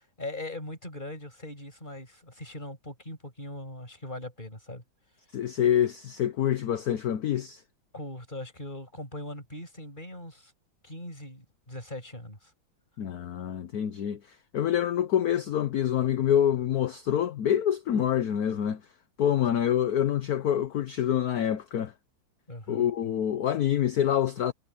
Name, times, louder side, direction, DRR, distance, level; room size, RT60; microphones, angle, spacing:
voice 1, 0.0-4.8 7.9-10.5 10.8-12.5 22.5-22.8, left 1 dB, 20° left, 7.4 m, -40 dB
voice 2, 5.3-7.6 13.0-18.8 19.2-21.9 22.7-24.5, left 10 dB, 60° left, 1.2 m, -26 dB
omnidirectional pair, 2.2 m